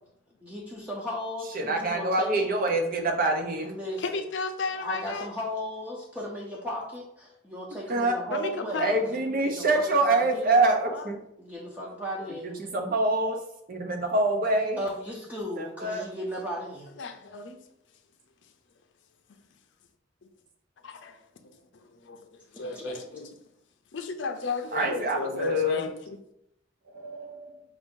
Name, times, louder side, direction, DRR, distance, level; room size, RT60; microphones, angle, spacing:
voice 1, 0.4-2.5 3.6-4.2 4.8-10.6 11.4-12.6 14.8-16.9 22.5-23.0, equal, 10° right, 0.6 m, -36 dB
voice 2, 1.5-3.7 7.9-8.2 8.8-11.2 12.4-13.4 13.7-14.8 15.6-16.0 24.7-25.8 26.9-27.5, right 2 dB, 50° right, 0.8 m, -25 dB
voice 3, 4.0-5.3 8.3-9.0 10.9-11.1 17.0-17.6 20.8-21.2 21.8-23.3 23.9-26.2, left 4 dB, 70° left, 0.5 m, -34 dB
4.7 x 2.6 x 3.7 m
head